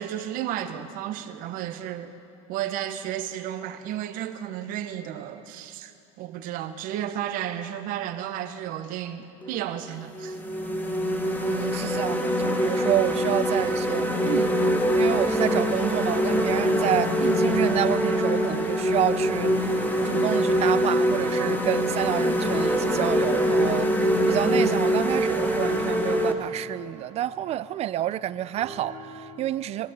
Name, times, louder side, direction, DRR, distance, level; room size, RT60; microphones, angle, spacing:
voice 1, 0.0-2.1 2.5-10.4, right 11 dB, 55° right, 1.1 m, -33 dB
sound 1, 9.4-9.6 10.2-26.3, equal, 10° left, 1.3 m, -24 dB
voice 2, 11.4-14.6 14.9-19.8 20.0-29.9, right 12 dB, 40° right, 0.5 m, -29 dB
sound 2, 11.7-11.8 12.2-12.3 12.7-12.8 13.1-13.2 13.6-13.7 14.1-14.2 14.6-14.7 15.1-15.2 15.5-15.6 15.9-29.3, right 2 dB, 85° right, 3.3 m, -45 dB
23.5 x 15.5 x 3.7 m
supercardioid pair, 110°, 17 cm